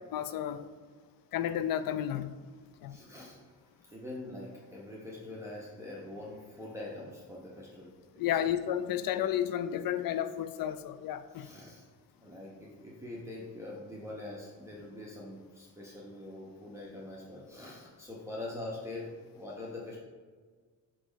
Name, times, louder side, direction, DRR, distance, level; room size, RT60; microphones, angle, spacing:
voice 1, 0.1-0.7 1.3-2.4 2.8-3.0 8.2-11.5, left 10 dB, 75° left, 13 dB, 0.5 m, -32 dB
voice 2, 2.9-7.9 8.3-8.5 11.3-11.9 12.2-20.0, left 2 dB, 10° right, -6 dB, 1.0 m, -44 dB
6.3 x 3.0 x 5.0 m, 1.5 s
cardioid pair, 100°, 35 cm